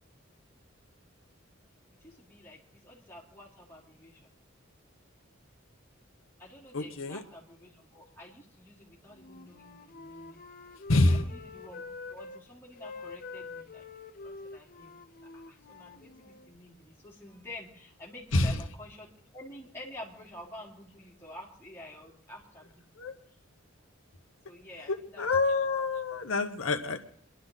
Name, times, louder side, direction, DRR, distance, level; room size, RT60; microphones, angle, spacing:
voice 1, 2.0-4.3 5.2-5.3 6.4-10.5 11.0-11.8 12.1-13.9 14.2-14.9 15.3-22.8 24.5-25.3, left 1 dB, 10° left, -5 dB, 3.6 m, -49 dB
voice 2, 6.7-7.2 10.9-11.3 18.3-18.6 23.0-23.1 24.9-27.0, left 2 dB, 90° left, 6 dB, 1.0 m, -27 dB
Wind instrument woodwind instrument, 9.1-12.4 12.7-16.5, left 3 dB, 45° left, 0.6 m, -46 dB
27.5 x 11.5 x 4.1 m, 0.66 s
head